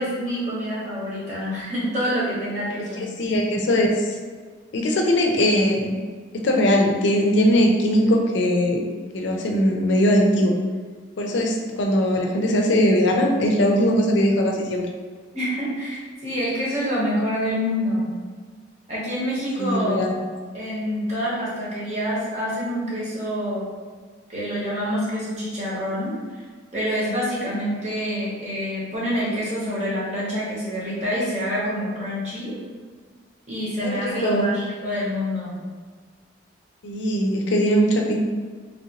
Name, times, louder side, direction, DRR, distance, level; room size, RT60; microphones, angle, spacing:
voice 1, 0.0-3.1 15.3-18.1 18.9-20.1 20.5-23.7 24.3-26.1 26.7-32.6 33.5-35.6, equal, 35° right, -7 dB, 1.0 m, -26 dB
voice 2, 3.0-4.2 4.7-5.9 6.3-8.8 9.1-10.5 11.2-14.9 19.6-20.1 27.4-27.5 33.8-34.5 36.8-38.2, equal, 70° left, 1 dB, 0.4 m, -20 dB
3.0 x 2.8 x 2.9 m, 1.5 s
head